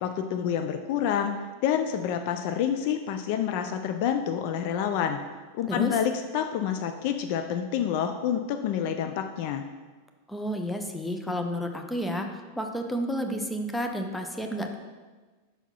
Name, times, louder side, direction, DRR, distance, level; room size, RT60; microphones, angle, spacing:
voice 1, 0.0-1.3 1.6-5.2 5.5-9.6, left 9 dB, 45° left, 7 dB, 0.4 m, -28 dB
voice 2, 5.7-6.0 10.3-14.7, equal, 5° left, 4 dB, 0.6 m, -31 dB
5.5 x 4.6 x 5.5 m, 1.4 s
figure-of-eight pair, 90°, 0 cm